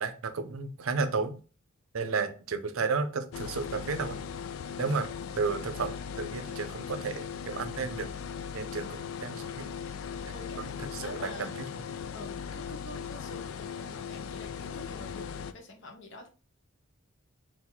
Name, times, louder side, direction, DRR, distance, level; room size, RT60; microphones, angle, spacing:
voice 1, 0.0-1.4 1.9-4.2 4.8-5.1 5.4-8.1 8.5-9.7 10.8-11.5, right 4 dB, 85° right, 10 dB, 0.6 m, -32 dB
voice 2, 2.0-2.3 4.8-5.0 10.3-11.5 12.1-16.3, left 1 dB, 60° left, 4 dB, 1.0 m, -47 dB
sound 1, 3.3-15.5, left 7 dB, 80° left, 0.4 m, -39 dB
4.2 x 2.6 x 3.9 m, 0.36 s
head